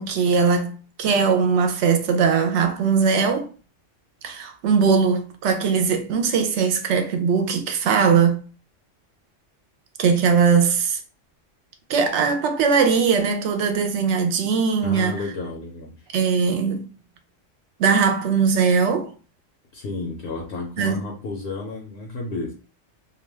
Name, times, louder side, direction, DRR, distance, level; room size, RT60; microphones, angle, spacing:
voice 1, 0.0-3.5 4.2-8.4 10.0-11.0 11.9-15.2 16.1-16.8 17.8-19.1 20.8-21.0, right 5 dB, 70° right, 0.8 m, -20 dB
voice 2, 14.8-16.0 19.7-22.5, left 3 dB, 65° left, 0.8 m, -32 dB
2.3 x 2.2 x 3.2 m
omnidirectional pair, 1.3 m